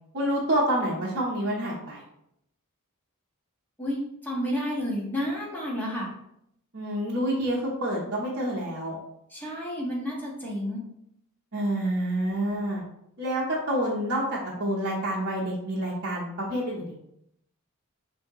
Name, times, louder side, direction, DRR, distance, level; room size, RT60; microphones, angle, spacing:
voice 1, 0.1-2.0 6.7-9.0 11.5-12.8 13.2-16.9, right 1 dB, 50° right, -5 dB, 0.9 m, -28 dB
voice 2, 3.8-6.1 9.3-10.8, equal, 10° left, -5 dB, 1.4 m, -31 dB
6.2 x 2.7 x 3.0 m, 0.76 s
head